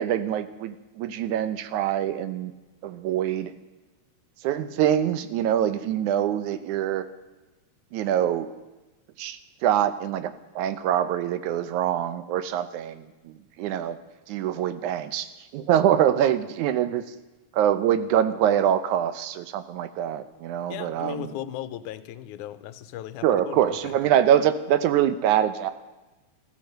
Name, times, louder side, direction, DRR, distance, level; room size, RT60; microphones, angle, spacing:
voice 1, 0.0-2.5 2.8-3.5 4.4-7.1 7.9-8.5 9.2-14.0 14.3-17.0 17.5-21.3 23.2-25.7, right 10 dB, 85° right, 12 dB, 2.3 m, -24 dB
voice 2, 20.7-24.0, left 11 dB, 85° left, 14 dB, 2.2 m, -37 dB
15.0 x 14.0 x 6.5 m, 1.1 s
omnidirectional pair, 3.4 m